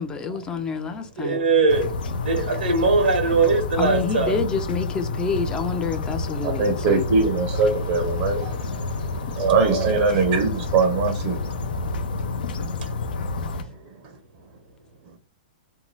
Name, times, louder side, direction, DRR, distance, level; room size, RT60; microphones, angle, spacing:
voice 1, 0.0-1.4 3.8-7.0, left 5 dB, 15° left, 0.4 m, -28 dB
voice 2, 1.2-1.9 2.2-4.4, right 4 dB, 90° right, 0.9 m, -20 dB
sound 1, 1.7-13.6, left 3 dB, 80° left, 0.5 m, -29 dB
voice 3, 6.4-11.4, right 4 dB, 45° right, 0.6 m, -22 dB
2.7 x 2.2 x 3.1 m
hypercardioid pair, 140°, 5 cm